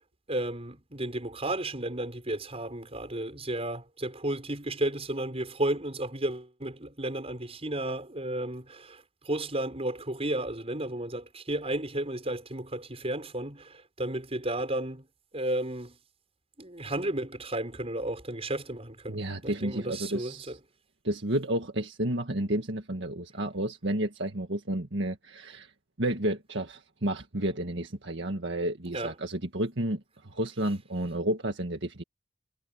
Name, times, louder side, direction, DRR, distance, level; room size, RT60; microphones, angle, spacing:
voice 1, 0.3-15.0 15.3-15.9 16.6-20.6 28.9-29.1, right 1 dB, 30° right, 6.6 m, -33 dB
voice 2, 19.1-20.5 21.0-25.7 26.0-32.0, right 1 dB, 65° right, 1.9 m, -31 dB
head